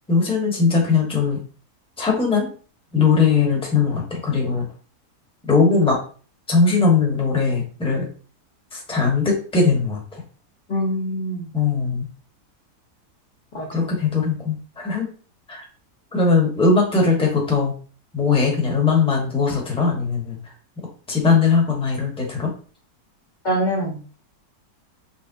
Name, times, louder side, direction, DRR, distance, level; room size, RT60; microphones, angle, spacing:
voice 1, 0.1-1.4 2.0-2.5 2.9-4.7 5.5-6.0 6.5-8.1 8.7-10.2 11.5-12.1 13.7-15.1 15.5-15.6 16.1-17.7 18.1-20.5 21.1-22.5, left 4 dB, 5° left, -1 dB, 0.9 m, -20 dB
voice 2, 10.7-11.5 13.5-13.7 23.4-24.0, equal, 35° left, -4 dB, 0.8 m, -24 dB
4.2 x 3.3 x 2.6 m, 0.39 s
omnidirectional pair, 1.8 m